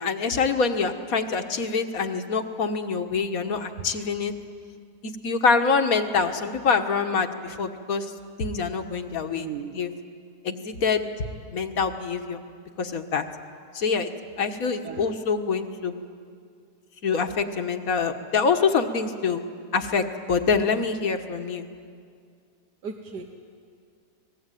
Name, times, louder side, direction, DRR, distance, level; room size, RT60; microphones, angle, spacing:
voice 1, 0.0-4.3 5.0-8.1 8.4-9.5 9.7-9.9 10.4-11.1 11.5-12.4 12.8-13.2 13.7-14.1 14.4-16.0 17.0-19.4 19.7-21.6, left 5 dB, 60° left, 7 dB, 1.7 m, -25 dB
voice 2, 9.3-9.8 14.8-15.0 22.8-23.2, right 6 dB, 85° right, 3 dB, 1.9 m, -35 dB
28.5 x 20.0 x 9.2 m, 2.2 s
omnidirectional pair, 1.7 m